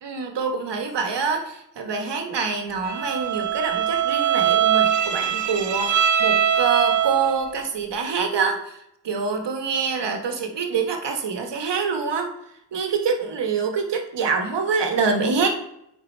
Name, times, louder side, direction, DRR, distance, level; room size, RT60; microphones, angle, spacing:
voice 1, 0.0-8.8 9.0-12.3 12.7-15.5, right 5 dB, 80° right, 5 dB, 1.2 m, -25 dB
Bowed string instrument, 2.8-7.5, right 9 dB, 45° right, 0.6 m, -22 dB
9.1 x 4.0 x 4.2 m, 0.77 s
cardioid pair, 75°, 41 cm